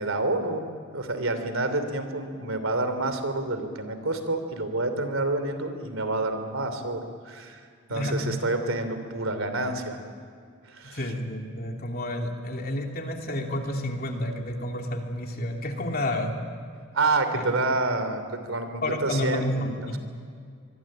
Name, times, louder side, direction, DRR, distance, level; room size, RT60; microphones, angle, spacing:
voice 1, 0.0-7.6 7.9-10.0 10.7-11.0 16.9-18.2 18.5-20.0, right 2 dB, 75° right, 9 dB, 3.1 m, -28 dB
voice 2, 7.9-8.3 10.8-16.4 17.3-17.4 18.8-20.0, left 1 dB, 45° left, 2 dB, 2.9 m, -30 dB
25.0 x 22.5 x 8.8 m, 2.2 s
head